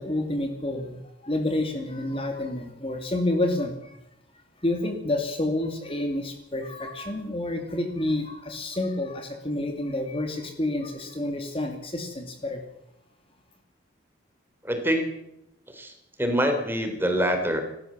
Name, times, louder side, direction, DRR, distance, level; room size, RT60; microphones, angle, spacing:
voice 1, 0.0-4.0 4.6-12.6, left 1 dB, 30° left, 4 dB, 2.6 m, -29 dB
voice 2, 14.6-15.1 15.7-15.9 16.2-17.6, equal, 10° right, 5 dB, 3.7 m, -25 dB
28.0 x 13.5 x 7.5 m, 0.83 s
head